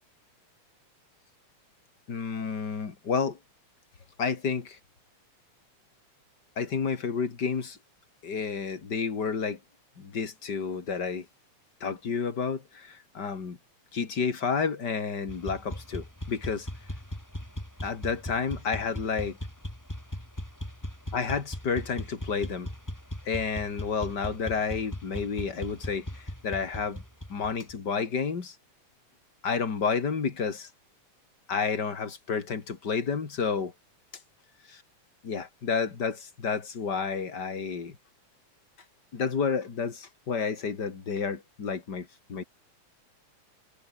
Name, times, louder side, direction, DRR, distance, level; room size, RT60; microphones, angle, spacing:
voice 1, 2.1-3.4 4.2-4.8 6.6-7.8 8.2-9.6 10.0-11.2 11.8-13.6 13.9-16.7 17.8-19.4 21.1-22.7 23.3-26.1 26.4-27.0 27.3-28.5 29.4-30.7 31.5-33.7 35.2-37.9 39.1-42.4, left 5 dB, 35° left, 2.7 m, -30 dB
sound 1, 15.3-27.7, equal, 5° left, 5.6 m, -38 dB
omnidirectional pair, 3.4 m